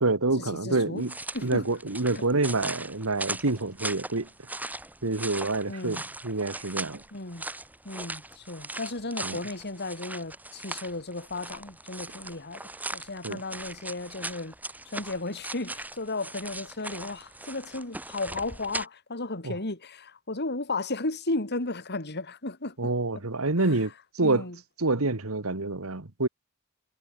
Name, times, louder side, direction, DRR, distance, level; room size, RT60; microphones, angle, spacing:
voice 1, 0.0-1.1 1.4-4.3 5.0-7.0 9.2-9.4 13.2-13.4 19.4-19.6 22.8-24.5 24.8-26.3, right 2 dB, 75° right, 1.8 m, -27 dB
voice 2, 0.6-1.0 1.3-1.7 2.1-2.2 5.7-6.0 7.1-7.4 7.9-14.5 14.9-22.8 23.6-23.7 24.2-24.6, left 2 dB, 50° left, 3.4 m, -34 dB
sound 1, 1.0-18.9, right 2 dB, 10° right, 2.1 m, -39 dB
head